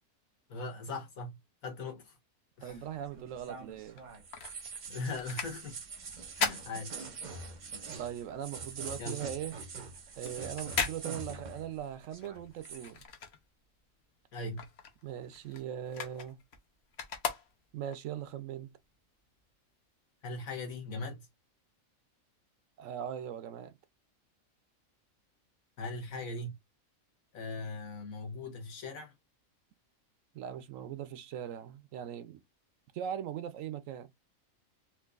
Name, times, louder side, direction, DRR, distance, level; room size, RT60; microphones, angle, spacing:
voice 1, 0.5-1.4 1.6-2.1 2.6-2.8 4.9-5.8 6.4-7.1 9.0-9.2 14.3-14.7 20.2-21.3 25.8-26.6 27.3-29.1, left 3 dB, 75° left, 1.6 m, -39 dB
voice 2, 2.6-4.0 8.0-9.5 10.2-13.0 15.0-16.4 17.7-18.7 22.8-23.8 30.3-32.4 32.9-34.1, right 10 dB, 75° right, 0.9 m, -40 dB
sound 1, 2.7-11.8 12.0-12.9, right 4 dB, 40° right, 0.7 m, -44 dB
sound 2, 3.9-7.6 7.9-13.9 14.2-18.0 18.5-18.6, left 6 dB, 55° left, 1.0 m, -39 dB
4.4 x 2.5 x 2.4 m
omnidirectional pair, 1.4 m